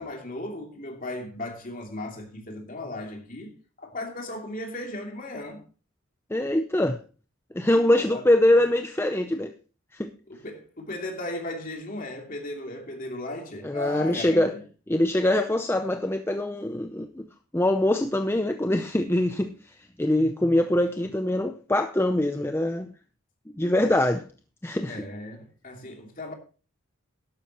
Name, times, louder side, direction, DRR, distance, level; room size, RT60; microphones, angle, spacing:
voice 1, 0.0-3.5 3.8-5.6 7.9-8.2 10.3-14.6 24.9-26.3, left 1 dB, 40° left, 2.9 m, -36 dB
voice 2, 6.3-7.0 7.5-9.5 9.9-10.1 13.6-14.5 14.9-17.2 17.5-22.9 23.6-24.3 24.6-25.0, left 1 dB, 10° left, 0.6 m, -23 dB
12.5 x 11.5 x 3.0 m
head